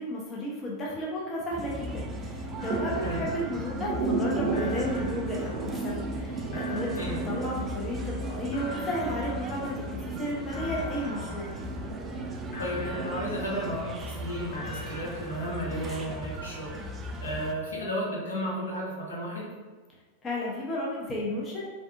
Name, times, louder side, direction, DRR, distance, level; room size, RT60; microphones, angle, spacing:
voice 1, 0.0-11.5 20.2-21.7, equal, 25° left, -4 dB, 0.6 m, -33 dB
sound 1, 1.5-17.5, equal, 20° right, 0.3 m, -38 dB
sound 2, 1.7-13.7, right 3 dB, 50° right, 0.6 m, -35 dB
sound 3, 2.6-4.2 4.5-6.2 6.5-8.2 8.5-10.2 10.5-12.2 12.5-14.2 14.5-16.2, left 1 dB, 40° left, 1.1 m, -45 dB
voice 2, 12.6-19.5, equal, 75° left, -6 dB, 0.9 m, -33 dB
3.3 x 2.6 x 2.4 m, 1.4 s
figure-of-eight pair, 90°, 0 cm